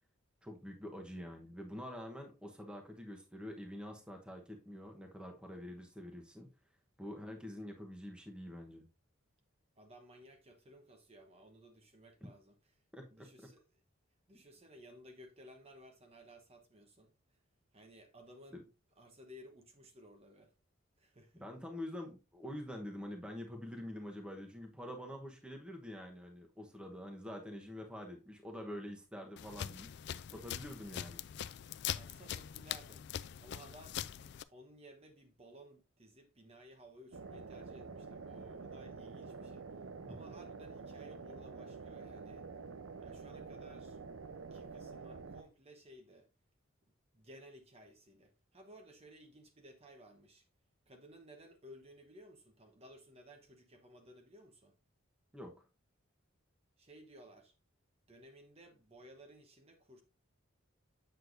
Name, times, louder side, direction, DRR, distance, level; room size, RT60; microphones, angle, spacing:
voice 1, 0.4-6.5 7.0-8.8 12.9-13.3 18.5-18.6 21.3-29.9 30.3-31.2 40.1-40.2 55.3-55.5, left 1 dB, 5° right, 1.0 m, -46 dB
voice 2, 9.8-12.6 13.1-13.6 14.3-17.1 17.7-18.7 19.0-20.5 21.0-21.4 31.9-33.1 33.4-39.7 40.1-42.4 43.0-44.0 44.5-46.3 47.1-50.5 50.9-54.8 56.8-57.5 58.1-60.0, equal, 30° right, 1.0 m, -57 dB
sound 1, 29.4-34.4, left 10 dB, 55° left, 0.3 m, -42 dB
sound 2, 37.1-45.4, right 4 dB, 90° right, 0.7 m, -48 dB
7.8 x 6.6 x 2.6 m
head